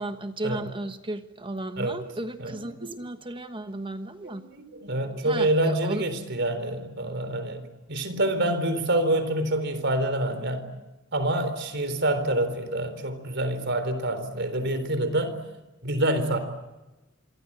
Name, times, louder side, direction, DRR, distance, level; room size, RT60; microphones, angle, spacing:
voice 1, 0.0-4.4 5.2-6.0, right 2 dB, 25° right, 8 dB, 1.3 m, -34 dB
voice 2, 2.4-3.0 4.2-10.7 11.1-15.4 15.8-16.4, right 1 dB, 60° right, 11 dB, 4.0 m, -27 dB
27.0 x 24.0 x 8.9 m, 1.1 s
head